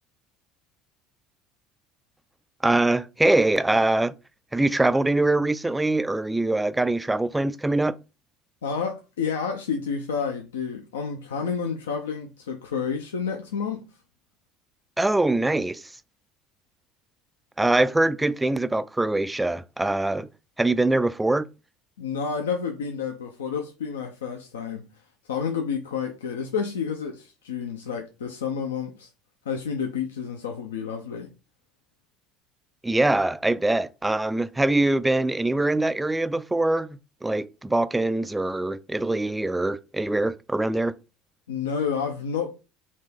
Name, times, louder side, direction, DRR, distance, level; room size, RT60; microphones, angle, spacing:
voice 1, 2.6-4.1 4.5-7.9 15.0-15.8 17.6-20.3 20.6-21.5 32.8-40.9, right 2 dB, 10° right, 0.3 m, -23 dB
voice 2, 8.6-13.8 22.0-24.8 25.3-29.1 29.5-31.3 41.5-42.5, left 6 dB, 70° left, 0.5 m, -30 dB
4.2 x 2.9 x 3.5 m
figure-of-eight pair, 65°, 0 cm